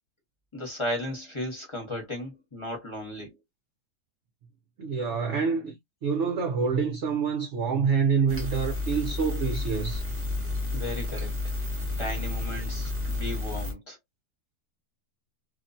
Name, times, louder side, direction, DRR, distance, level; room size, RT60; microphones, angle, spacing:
voice 1, 0.5-3.4 10.7-11.3 12.0-14.0, left 1 dB, 20° left, 0.9 m, -35 dB
voice 2, 4.8-10.0, right 5 dB, 60° right, 0.8 m, -27 dB
sound 1, 8.3-13.7, left 2 dB, 15° right, 0.5 m, -31 dB
2.9 x 2.1 x 2.6 m
omnidirectional pair, 1.7 m